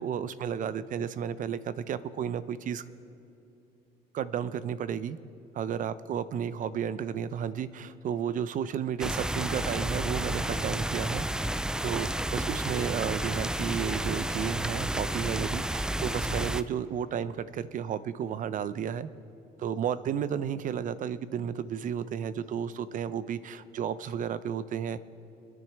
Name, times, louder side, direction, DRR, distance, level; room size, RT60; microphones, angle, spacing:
voice 1, 0.0-2.8 4.1-5.2 5.5-11.2 11.8-19.1 19.6-25.0, right 8 dB, 50° right, 15 dB, 0.6 m, -32 dB
sound 1, 9.0-16.6, right 1 dB, 5° right, 0.3 m, -31 dB
25.0 x 10.5 x 3.4 m, 2.8 s
cardioid pair, 110°, 17 cm